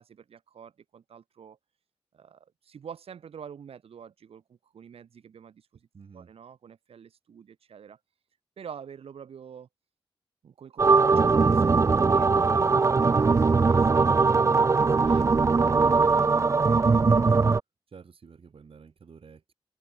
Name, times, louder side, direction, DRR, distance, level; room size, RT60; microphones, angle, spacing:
voice 1, 0.0-1.6 2.1-5.9 6.1-8.2 8.6-9.7 10.4-16.9, right 7 dB, 90° right, 7.1 m, -47 dB
voice 2, 5.9-6.3 17.9-19.5, right 5 dB, 70° right, 6.2 m, -50 dB
sound 1, 10.8-17.6, right 4 dB, 30° right, 0.3 m, -21 dB
cardioid pair, 45°, 10 cm